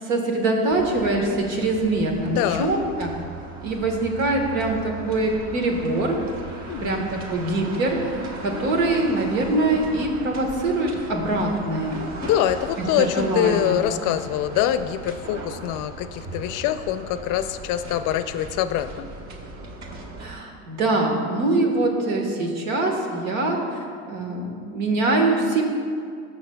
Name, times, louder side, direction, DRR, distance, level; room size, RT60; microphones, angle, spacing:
voice 1, 0.0-3.1 3.6-6.2 6.8-8.0 8.4-12.0 12.8-14.0 20.2-25.7, right 2 dB, 80° right, 2 dB, 1.5 m, -23 dB
sound 1, 0.7-20.3, right 2 dB, 40° right, 1.2 m, -38 dB
voice 2, 2.3-2.7 6.7-7.1 8.5-8.6 12.2-19.1, left 11 dB, 55° left, 11 dB, 0.5 m, -24 dB
16.0 x 6.3 x 2.3 m, 2.2 s
supercardioid pair, 95°, 40 cm